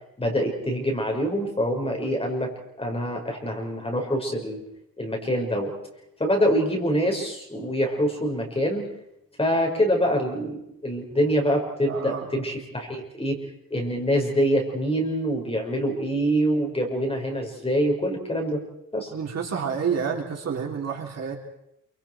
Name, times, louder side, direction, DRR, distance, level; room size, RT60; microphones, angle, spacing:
voice 1, 0.2-2.5 2.8-4.6 5.0-5.7 6.2-8.9 9.4-13.4 13.7-18.6 18.9-19.1, equal, 15° left, 1 dB, 5.2 m, -25 dB
voice 2, 11.9-12.4 19.1-21.4, right 6 dB, 50° right, 0 dB, 4.1 m, -29 dB
28.0 x 25.0 x 4.6 m, 0.79 s
wide cardioid pair, 135°, 33 cm